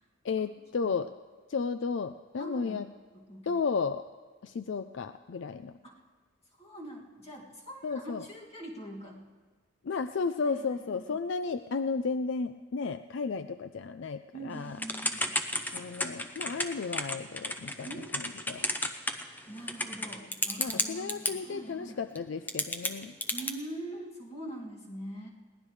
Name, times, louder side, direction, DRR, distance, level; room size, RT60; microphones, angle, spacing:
voice 1, 0.2-1.1 1.5-2.9 3.5-4.1 4.4-5.8 7.8-8.2 9.8-14.8 15.7-17.9 18.5-18.7 20.6-23.1, left 5 dB, 65° left, 10 dB, 0.4 m, -33 dB
voice 2, 2.4-2.9 3.1-3.6 5.8-6.0 6.6-9.3 10.4-11.2 14.3-15.3 17.8-18.5 19.5-22.0 23.3-25.3, right 1 dB, 30° left, -2 dB, 2.3 m, -43 dB
Typing / Telephone, 14.8-21.3 22.1-22.2 22.5-23.5, left 1 dB, 10° left, 0.6 m, -32 dB
21.5 x 17.5 x 3.2 m, 1.4 s
head